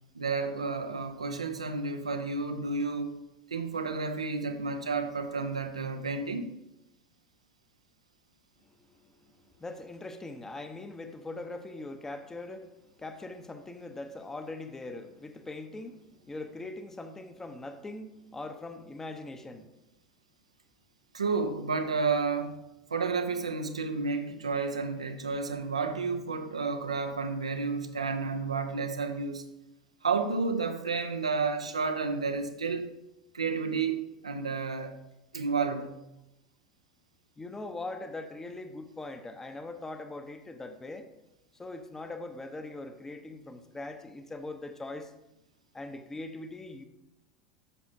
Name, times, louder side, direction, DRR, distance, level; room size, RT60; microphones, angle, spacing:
voice 1, 0.1-3.2 3.5-6.5 21.1-22.6 22.9-29.4 30.0-32.9 33.3-34.9 35.3-36.0, right 4 dB, 85° right, 0.7 m, -31 dB
voice 2, 8.7-19.7 37.4-41.1 41.5-45.1 45.7-46.8, left 2 dB, 15° left, 0.8 m, -41 dB
9.8 x 7.1 x 2.8 m
figure-of-eight pair, 80°, 3 cm